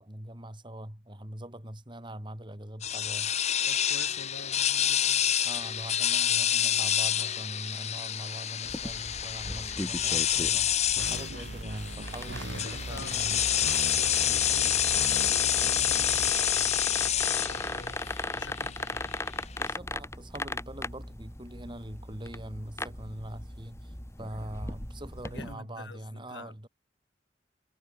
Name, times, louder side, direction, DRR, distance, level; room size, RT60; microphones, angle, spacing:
voice 1, 0.0-3.4 5.4-10.8 11.1-13.4 19.6-26.7, right 1 dB, 25° right, 4.2 m, -42 dB
sound 1, 2.8-19.7, left 10 dB, 40° left, 0.9 m, -28 dB
voice 2, 3.6-5.4 11.4-11.6 12.5-13.4 14.0-19.4 24.7-24.8 25.2-26.7, left 2 dB, 80° left, 5.8 m, -47 dB
sound 2, 8.6-25.5, left 2 dB, 15° left, 3.5 m, -38 dB
sound 3, 11.0-16.3, right 2 dB, 85° right, 1.7 m, -39 dB
head